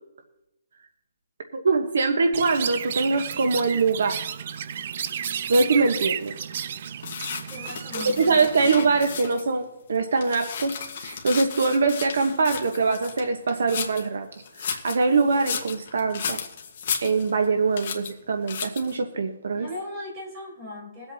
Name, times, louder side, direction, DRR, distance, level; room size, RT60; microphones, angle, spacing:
voice 1, 1.5-4.2 5.5-6.3 7.9-14.3 14.6-16.4 17.0-19.7, right 4 dB, 60° right, 6 dB, 1.1 m, -23 dB
Chirp tweet, 2.3-9.2, right 8 dB, 35° right, 0.4 m, -33 dB
sound 1, 7.0-9.5 10.0-14.1 14.5-17.5 17.8-18.1 18.5-19.0, left 7 dB, 35° left, 1.3 m, -34 dB
voice 2, 7.4-8.5 19.5-21.1, left 1 dB, 15° right, -3 dB, 3.8 m, -38 dB
22.5 x 8.1 x 2.8 m, 0.91 s
hypercardioid pair, 180°, 0 cm